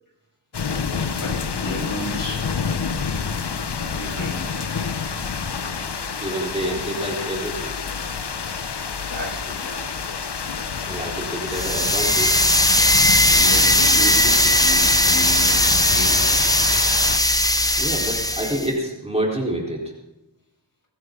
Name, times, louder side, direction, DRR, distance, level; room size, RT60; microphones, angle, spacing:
sound 1, 0.5-17.2, left 5 dB, 65° left, 1.1 m, -28 dB
voice 1, 1.1-2.6 3.8-4.7 8.8-10.1 13.2-16.6, left 1 dB, 50° left, -2 dB, 7.5 m, -33 dB
voice 2, 6.2-7.7 10.8-12.4 17.8-19.8, right 1 dB, 15° right, -3 dB, 4.3 m, -27 dB
sound 2, 11.5-18.7, left 1 dB, 10° left, 1.1 m, -18 dB
22.0 x 16.0 x 4.0 m, 0.95 s
wide cardioid pair, 70°, 44 cm